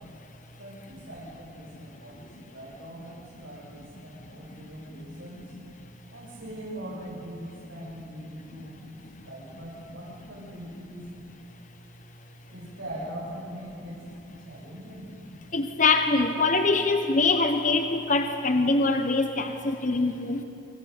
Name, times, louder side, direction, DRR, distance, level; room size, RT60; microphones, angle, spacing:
voice 1, 0.6-5.5 6.1-11.1 12.5-14.1 14.4-15.1, right 1 dB, 85° right, -8 dB, 6.8 m, -42 dB
voice 2, 15.5-20.4, left 3 dB, 45° left, 6 dB, 1.1 m, -23 dB
27.5 x 25.5 x 6.8 m, 2.8 s
head